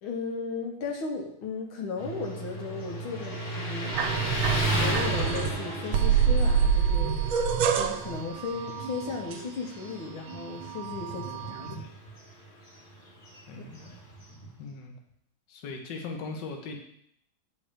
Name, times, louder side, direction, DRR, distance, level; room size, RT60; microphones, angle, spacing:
voice 1, 0.0-4.3 4.7-11.9 13.6-13.7, left 4 dB, 80° left, 1 dB, 1.9 m, -36 dB
Motorcycle, 2.0-14.6, right 1 dB, 40° left, 1.8 m, -35 dB
sound 1, 3.9-5.6 5.9-9.9 10.3-11.8, right 7 dB, 75° right, 1.4 m, -27 dB
voice 2, 11.1-11.9 13.5-14.0 14.6-15.0 15.5-16.8, left 4 dB, 65° left, 1 dB, 1.6 m, -40 dB
8.9 x 4.3 x 5.0 m, 0.70 s
omnidirectional pair, 2.2 m